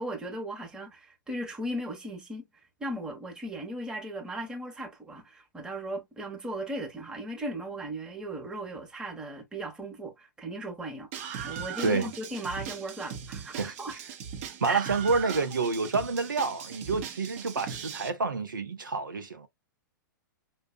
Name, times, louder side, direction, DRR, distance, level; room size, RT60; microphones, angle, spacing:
voice 1, 0.0-2.5 2.8-11.1 11.4-14.0 14.7-14.8, right 1 dB, 5° right, 1.1 m, -37 dB
Screaming, 11.1-18.1, right 8 dB, 40° right, 0.9 m, -39 dB
voice 2, 14.6-19.5, right 4 dB, 75° right, 0.8 m, -28 dB
5.4 x 2.3 x 2.2 m
figure-of-eight pair, 105°, 11 cm